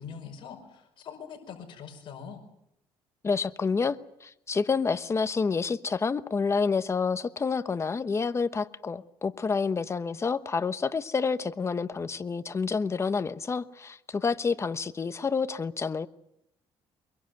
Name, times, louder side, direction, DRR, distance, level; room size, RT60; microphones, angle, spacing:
voice 1, 0.0-2.4, left 7 dB, 55° left, 1 dB, 5.5 m, -43 dB
voice 2, 3.2-16.1, left 5 dB, 25° left, 12 dB, 1.1 m, -28 dB
23.5 x 22.5 x 7.9 m, 0.79 s
cardioid pair, 110°, 10 cm